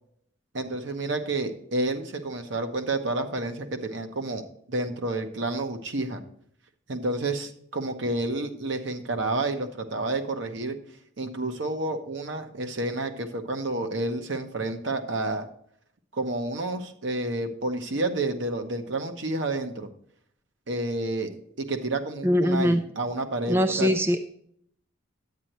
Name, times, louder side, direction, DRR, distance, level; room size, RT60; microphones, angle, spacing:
voice 1, 0.5-6.2 6.9-10.7 11.2-15.5 16.1-19.9 20.7-21.3 21.6-23.9, right 2 dB, 60° right, 6 dB, 1.0 m, -30 dB
voice 2, 22.2-22.8 23.5-24.2, equal, 10° right, 7 dB, 0.3 m, -22 dB
9.5 x 8.9 x 3.1 m, 0.66 s
head